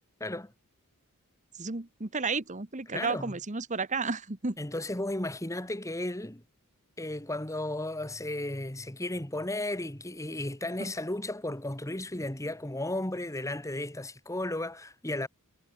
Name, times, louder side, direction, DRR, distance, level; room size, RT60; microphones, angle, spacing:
voice 1, 0.2-0.5 2.9-3.3 4.6-6.4 7.0-15.3, left 1 dB, 15° left, 1.8 m, -34 dB
voice 2, 1.5-4.6 10.8-10.9, right 4 dB, 35° right, 1.4 m, -32 dB
head